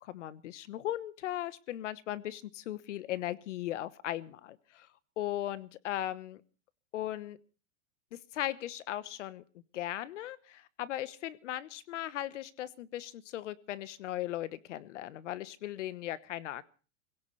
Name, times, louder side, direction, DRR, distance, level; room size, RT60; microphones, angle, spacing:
voice 1, 0.0-4.9 5.2-6.4 6.9-7.4 8.1-9.4 9.7-16.6, left 13 dB, 65° left, 16 dB, 1.2 m, -38 dB
26.5 x 17.0 x 3.2 m, 0.37 s
supercardioid pair, 175°, 39 cm